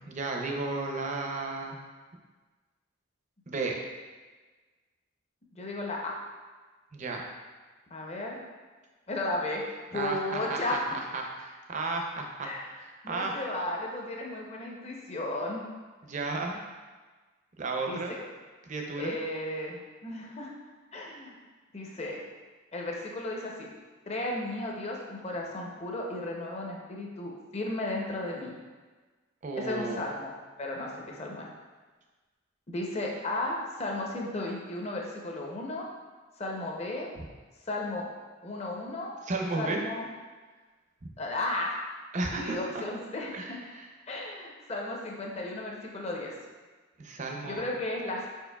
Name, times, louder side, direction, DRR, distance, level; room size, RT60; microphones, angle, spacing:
voice 1, 0.0-1.8 3.5-3.8 6.9-7.2 9.9-10.6 11.1-12.5 12.8-13.4 16.0-16.6 17.6-18.2 18.6-19.2 29.4-30.0 37.2-37.3 39.2-39.8 42.1-42.8 43.3-43.9 47.0-47.7, right 3 dB, 35° right, 1 dB, 0.5 m, -33 dB
voice 2, 5.5-6.2 7.9-8.4 9.1-10.8 12.4-12.7 13.0-15.6 17.9-18.2 19.0-20.5 20.9-21.4 21.7-22.2 22.7-23.7 24.1-28.5 29.6-30.3 30.6-31.5 32.7-35.8 36.4-37.1 37.6-38.1 38.4-39.1 39.6-40.1 41.2-41.8 42.3-43.6 44.1-46.3 47.4-48.3, left 2 dB, 30° left, -1 dB, 0.6 m, -34 dB
5.2 x 4.5 x 2.3 m, 1.3 s
head